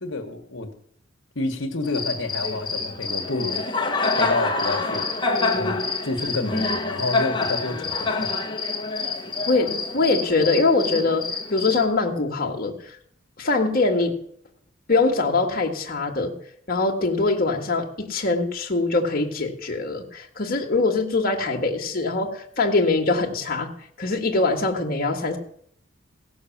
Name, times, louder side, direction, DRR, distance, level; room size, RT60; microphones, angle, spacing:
voice 1, 0.0-0.7 1.3-3.6 4.2-5.0 5.5-8.3, left 2 dB, 65° left, 3 dB, 1.4 m, -29 dB
Cricket, 1.8-11.9, left 3 dB, 25° left, 1.2 m, -26 dB
voice 2, 9.5-11.2 11.5-12.8 13.4-14.1 14.9-16.3 16.7-23.7 24.0-25.4, left 3 dB, 45° left, 1 dB, 1.5 m, -23 dB
16.5 x 6.4 x 7.2 m, 0.66 s
head